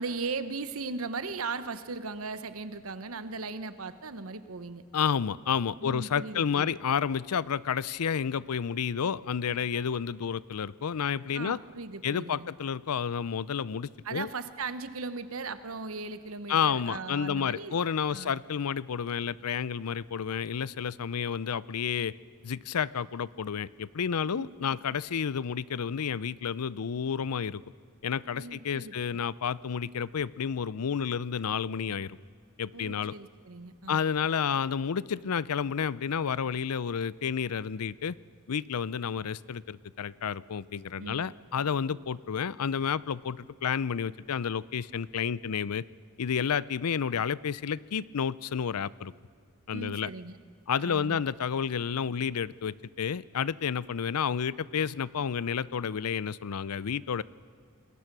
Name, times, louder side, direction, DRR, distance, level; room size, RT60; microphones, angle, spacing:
voice 1, 0.0-4.8 5.8-6.7 11.3-12.5 14.0-17.8 18.1-18.4 24.2-24.8 28.4-29.2 32.7-34.0 41.0-41.2 41.9-42.0 49.7-50.4 50.8-51.2, right 4 dB, 70° right, 12 dB, 1.0 m, -38 dB
voice 2, 4.9-11.6 12.0-14.3 16.5-22.1 22.4-27.6 28.0-32.2 32.6-33.1 33.9-38.2 38.5-45.8 46.2-49.1 49.7-50.1 50.7-57.2, left 7 dB, 90° left, 20 dB, 0.5 m, -30 dB
27.5 x 21.0 x 6.1 m, 2.1 s
head